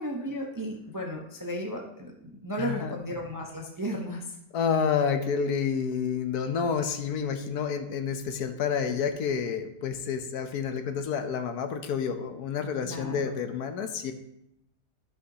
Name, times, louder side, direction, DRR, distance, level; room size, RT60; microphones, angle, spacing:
voice 1, 0.0-2.1 2.4-4.4 12.8-13.3, equal, 20° right, 0 dB, 0.5 m, -34 dB
voice 2, 2.6-3.0 4.5-14.1, left 6 dB, 70° left, 8 dB, 1.2 m, -29 dB
12.5 x 5.7 x 2.8 m, 0.80 s
omnidirectional pair, 1.8 m